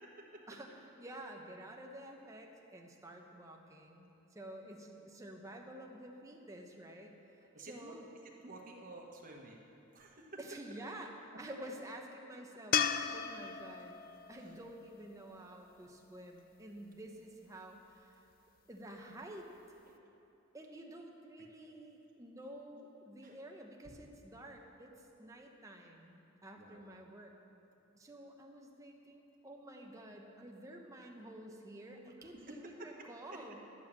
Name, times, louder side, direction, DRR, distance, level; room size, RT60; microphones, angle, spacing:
voice 1, 0.5-8.1 10.4-12.9 13.1-14.0 14.3-18.2 18.7-19.8 20.5-27.3 27.9-33.6, right 1 dB, 15° right, 1 dB, 0.9 m, -50 dB
voice 2, 7.4-8.0 8.4-10.4 14.2-14.6 19.9-20.0 23.2-23.4 26.6-26.8 32.5-32.7 33.3-33.4, right 2 dB, 40° right, 0 dB, 1.3 m, -52 dB
sound 1, 12.7-16.0 19.2-19.3, left 8 dB, 45° left, 0.4 m, -36 dB
11.0 x 7.1 x 7.3 m, 2.8 s
head